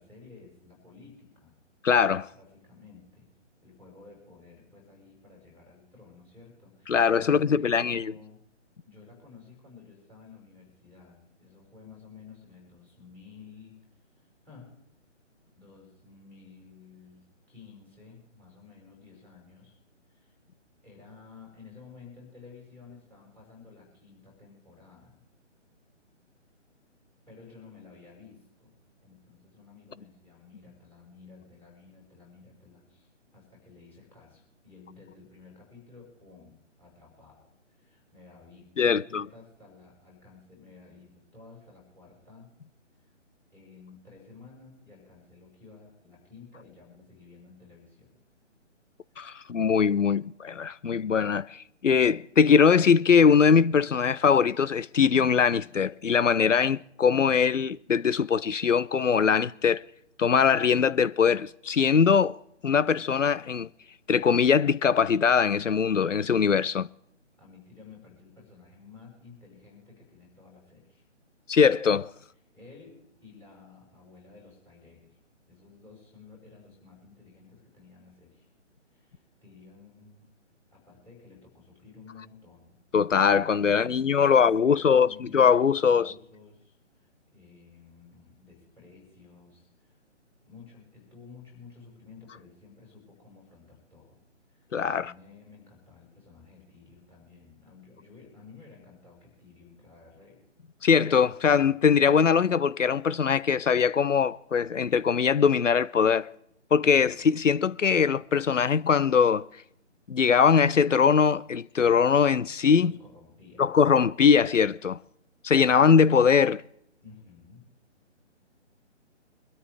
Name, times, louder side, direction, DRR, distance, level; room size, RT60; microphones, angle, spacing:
voice 1, 0.0-1.6 2.3-3.3 3.6-8.4 8.8-13.8 14.1-14.8 15.6-19.8 20.1-20.3 20.8-25.2 27.3-28.8 29.0-42.5 43.0-43.2 43.5-48.2 49.1-49.2 67.4-71.1 72.5-75.2 75.5-78.5 78.9-80.3 80.7-82.8 83.7-85.5 85.8-90.0 90.4-94.2 94.5-100.4 106.9-107.3 112.8-113.7 117.0-117.6, left 4 dB, 5° left, 5.2 m, -53 dB
voice 2, 1.8-2.3 6.9-8.1 38.8-39.2 49.2-59.8 60.2-62.4 62.6-63.7 64.1-66.9 71.5-72.1 82.9-86.1 94.7-95.1 100.8-106.3 106.7-109.5 110.1-112.9 113.6-115.0 115.4-116.6, left 6 dB, 85° left, 0.5 m, -22 dB
24.0 x 13.0 x 3.4 m
figure-of-eight pair, 145°, 37 cm